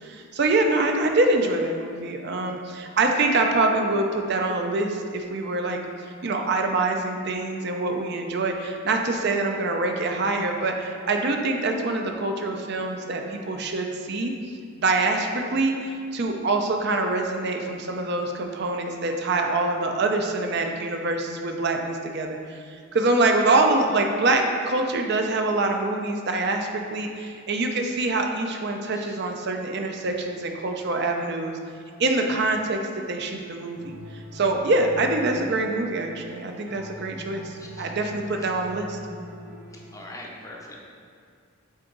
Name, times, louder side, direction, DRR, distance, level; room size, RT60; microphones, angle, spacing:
voice 1, 0.0-5.8 6.2-14.3 14.8-31.6 32.0-32.8 33.1-34.0 34.3-39.0, right 2 dB, 50° right, 3 dB, 0.5 m, -25 dB
sound 1, 33.7-40.2, equal, 70° right, 1.0 m, -43 dB
voice 2, 39.9-40.8, left 1 dB, 15° left, -1 dB, 0.6 m, -42 dB
8.0 x 3.9 x 3.9 m, 2.2 s
head